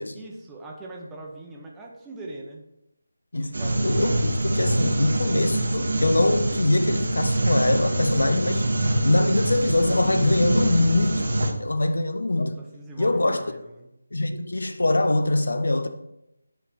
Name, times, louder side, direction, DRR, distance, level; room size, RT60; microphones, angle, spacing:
voice 1, 0.1-2.6 3.4-4.0 11.8-11.9 12.5-13.9, right 2 dB, 5° right, 0.8 m, -41 dB
sound 1, 3.5-11.5, right 1 dB, 55° right, 1.0 m, -24 dB
voice 2, 3.8-8.7 9.0-11.3 11.6-12.6 13.0-13.4 14.1-15.9, left 2 dB, 60° left, 0.6 m, -23 dB
9.2 x 3.3 x 4.2 m
figure-of-eight pair, 155°, 0 cm